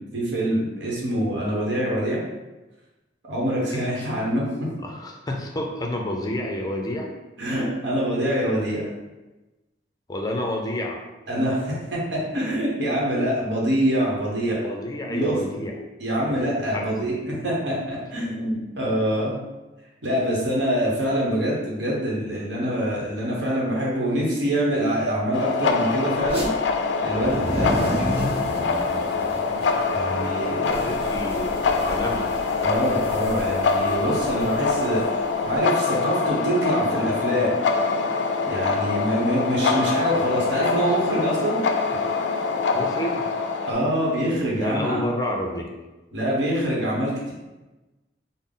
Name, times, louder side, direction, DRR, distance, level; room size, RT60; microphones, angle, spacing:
voice 1, 0.1-2.2 3.3-4.7 7.4-8.8 11.3-14.6 15.1-15.4 16.0-19.4 20.0-26.5 27.0-28.3 29.9-31.0 32.6-35.0 35.4-37.6 38.5-41.6 43.6-45.0 46.1-47.3, equal, 70° right, -4 dB, 0.9 m, -25 dB
voice 2, 4.8-7.1 10.1-11.0 14.6-15.8 16.3-17.1 27.3-27.5 30.8-32.3 40.9-41.0 42.7-43.3 44.6-45.7, left 1 dB, 20° left, 1 dB, 0.5 m, -29 dB
sound 1, 25.3-43.7, left 4 dB, 75° left, 0.3 m, -24 dB
sound 2, 26.2-26.5 27.1-35.6, equal, 35° right, 0.9 m, -33 dB
3.7 x 2.0 x 3.7 m, 1.1 s
head